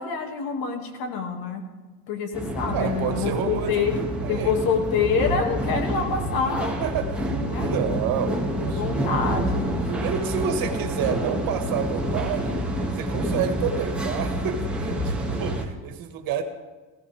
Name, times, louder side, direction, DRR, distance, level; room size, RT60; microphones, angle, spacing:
voice 1, 0.0-1.6 2.1-3.9 4.3-6.8 7.5-7.7 8.8-9.9, left 6 dB, 65° left, 3 dB, 2.4 m, -26 dB
sound 1, 2.3-15.7, right 1 dB, 5° right, 2.2 m, -28 dB
voice 2, 2.7-3.8 4.2-4.6 6.8-7.3 7.6-8.9 9.3-9.5 9.9-12.6 13.0-16.4, right 8 dB, 60° right, 5 dB, 1.9 m, -29 dB
16.0 x 14.5 x 3.6 m, 1.3 s
supercardioid pair, 110°, 38 cm